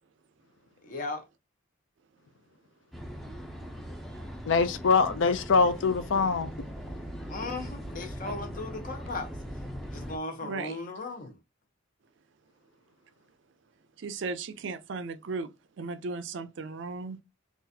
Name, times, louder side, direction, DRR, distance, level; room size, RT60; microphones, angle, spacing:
voice 1, 0.8-1.3 7.3-9.3 9.9-11.4, left 3 dB, 40° left, 0.8 m, -37 dB
sound 1, 2.9-10.2, equal, ahead, 0.5 m, -40 dB
voice 2, 4.5-6.5, left 4 dB, 65° left, 0.4 m, -23 dB
voice 3, 10.4-10.8 14.0-17.2, right 4 dB, 60° right, 0.4 m, -36 dB
3.9 x 2.4 x 2.7 m
head